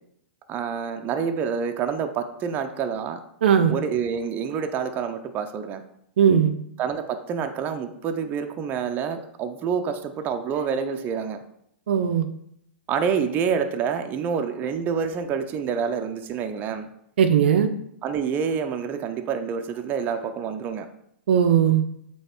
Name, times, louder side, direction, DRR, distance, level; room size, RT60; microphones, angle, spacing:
voice 1, 0.5-3.2 3.7-5.8 6.8-11.4 12.9-16.9 18.0-20.9, right 6 dB, 30° right, 6 dB, 0.7 m, -27 dB
voice 2, 3.4-3.7 6.2-6.5 11.9-12.3 17.2-17.7 21.3-21.8, right 8 dB, 65° right, 7 dB, 0.6 m, -18 dB
7.8 x 3.1 x 4.5 m, 0.73 s
hypercardioid pair, 115°, 6 cm